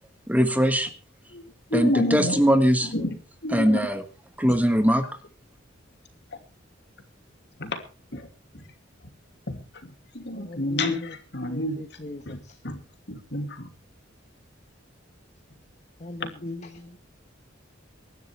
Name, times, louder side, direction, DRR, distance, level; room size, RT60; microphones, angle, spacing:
voice 1, 0.3-0.9 1.7-2.9 3.5-4.0 4.4-5.0, equal, 10° right, 8 dB, 1.4 m, -21 dB
voice 2, 1.3-2.4 2.8-4.0 4.5-4.6 6.3-6.4 7.6-7.8 8.1-8.3 8.5-8.7 9.5-12.0 12.3-12.8 13.1-13.7 16.2-16.3, left 1 dB, 60° left, 6 dB, 2.8 m, -30 dB
voice 3, 10.3-10.8 11.5-12.4 16.0-17.0, left 1 dB, 35° left, 6 dB, 1.4 m, -39 dB
24.0 x 12.0 x 3.4 m, 0.35 s
head